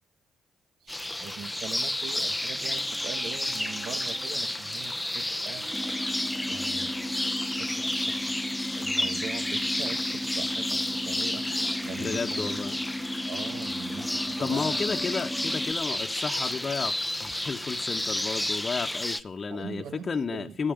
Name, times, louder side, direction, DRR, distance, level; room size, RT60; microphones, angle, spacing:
voice 1, 0.8-5.7 6.5-6.9 7.6-8.3 8.7-12.8 13.3-14.9 19.5-20.6, right 7 dB, 75° right, 11 dB, 1.8 m, -42 dB
sound 1, 0.9-19.2, left 1 dB, 10° left, 0.9 m, -31 dB
sound 2, 2.6-4.5 5.6-7.5 11.3-13.6, right 7 dB, 50° right, 0.9 m, -50 dB
sound 3, 5.7-15.7, left 1 dB, 10° right, 2.2 m, -36 dB
voice 2, 12.0-12.7 14.4-20.7, left 5 dB, 35° left, 4 dB, 1.2 m, -32 dB
13.0 x 9.3 x 9.3 m, 0.41 s
cardioid pair, 90°, 0 cm